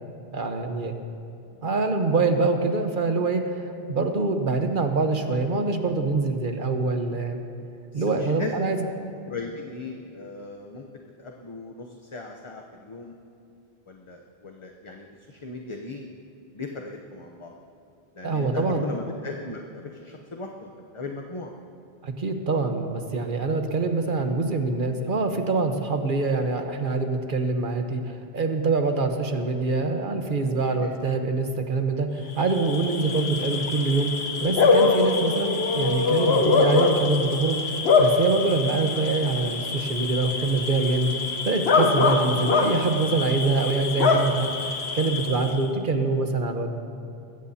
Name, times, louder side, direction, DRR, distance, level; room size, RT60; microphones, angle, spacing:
voice 1, 0.3-0.9 1.6-7.4 7.9-8.8 18.2-18.9 22.0-34.1 34.4-37.6 38.0-41.1 41.4-44.5 44.9-46.7, right 3 dB, 55° right, 5 dB, 1.2 m, -25 dB
voice 2, 7.9-8.5 9.3-10.8 11.2-13.1 13.9-16.1 16.5-17.5 18.2-21.5 30.8-30.9, left 3 dB, 35° left, 1 dB, 0.8 m, -37 dB
Bark / Cricket, 32.3-45.6, left 4 dB, 85° left, 1.3 m, -24 dB
21.0 x 16.0 x 2.8 m, 2.6 s
omnidirectional pair, 1.0 m